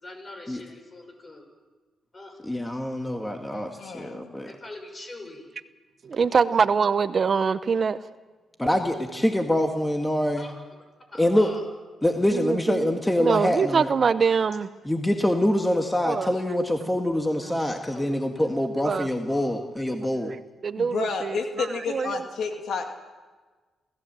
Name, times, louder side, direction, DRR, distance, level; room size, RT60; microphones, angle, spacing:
voice 1, 0.0-1.4 2.1-2.3 4.4-5.4 10.4-10.5 11.1-11.6 17.9-18.5 18.9-19.5, left 2 dB, 35° left, 4 dB, 6.6 m, -43 dB
voice 2, 2.4-4.5 8.6-10.5 11.2-11.5 12.0-13.9 14.8-20.3, left 1 dB, 10° left, 4 dB, 1.9 m, -25 dB
voice 3, 3.5-4.3 20.8-22.9, left 4 dB, 70° left, 4 dB, 2.3 m, -31 dB
voice 4, 6.0-8.0 12.3-12.9 13.2-14.7 16.1-16.3 18.8-19.1 20.1-20.4 20.6-22.3, right 5 dB, 50° right, 13 dB, 0.8 m, -24 dB
28.0 x 15.5 x 7.6 m, 1.3 s
cardioid pair, 65°, 0 cm